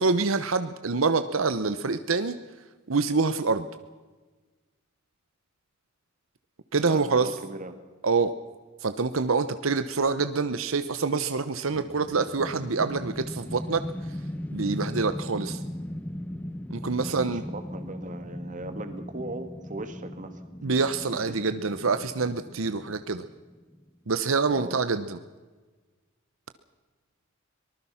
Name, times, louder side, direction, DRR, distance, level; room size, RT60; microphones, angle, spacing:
voice 1, 0.0-2.4 2.9-3.7 6.7-7.3 8.0-8.3 8.8-14.2 14.5-15.6 16.7-17.4 20.6-23.3 24.1-25.2, right 4 dB, 80° right, 10 dB, 0.9 m, -26 dB
voice 2, 6.8-7.8 17.0-20.4 24.5-24.8, right 2 dB, 40° right, 8 dB, 2.1 m, -38 dB
sound 1, 11.7-23.9, left 1 dB, 10° left, 0.8 m, -38 dB
24.0 x 19.5 x 5.8 m, 1.3 s
head